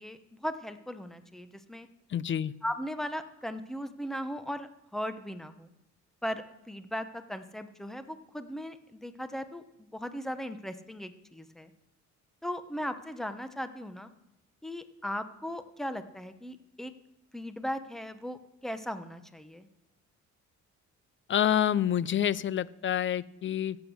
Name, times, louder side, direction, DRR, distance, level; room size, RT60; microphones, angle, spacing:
voice 1, 0.0-1.9 2.6-5.7 6.2-11.7 12.4-14.1 14.6-16.9 17.3-19.7, equal, ahead, 10 dB, 1.0 m, -38 dB
voice 2, 2.1-2.5 21.3-23.8, left 10 dB, 40° left, 20 dB, 0.5 m, -27 dB
15.5 x 8.2 x 6.4 m, 0.90 s
cardioid pair, 90°, 30 cm